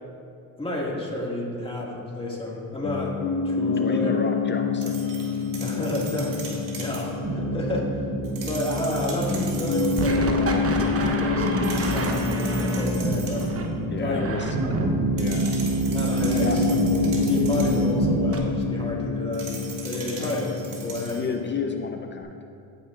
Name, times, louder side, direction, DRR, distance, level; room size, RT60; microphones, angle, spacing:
voice 1, 0.6-3.2 3.4-4.1 5.6-7.9 8.5-10.6 11.0-11.5 11.9-13.5 14.0-14.4 15.9-19.5 19.8-21.2, left 1 dB, 15° left, -4 dB, 2.0 m, -30 dB
Piano, 2.8-22.2, left 6 dB, 75° left, 1.9 m, -29 dB
voice 2, 3.8-5.0 8.4-8.5 13.9-14.6 15.1-15.6 16.3-16.6 20.1-20.5 21.1-22.4, left 5 dB, 30° left, 5 dB, 0.6 m, -32 dB
sound 1, 4.8-7.1 8.2-10.2 11.6-13.6 15.2-17.9 19.3-21.3, right 4 dB, 60° right, 1.8 m, -40 dB
sound 2, 7.2-18.4, right 2 dB, 40° right, 1.0 m, -26 dB
15.0 x 5.7 x 2.5 m, 2.5 s
cardioid pair, 85°, 36 cm